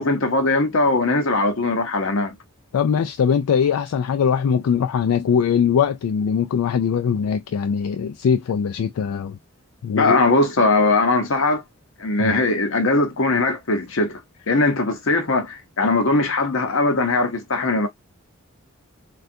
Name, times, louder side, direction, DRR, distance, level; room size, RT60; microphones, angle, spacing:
voice 1, 0.0-2.3 9.9-11.6 12.0-14.2 14.5-17.9, left 2 dB, 65° left, 0.8 m, -20 dB
voice 2, 2.7-9.4 9.8-10.2 12.2-12.4, left 7 dB, 80° left, 0.3 m, -21 dB
3.3 x 2.4 x 2.6 m
head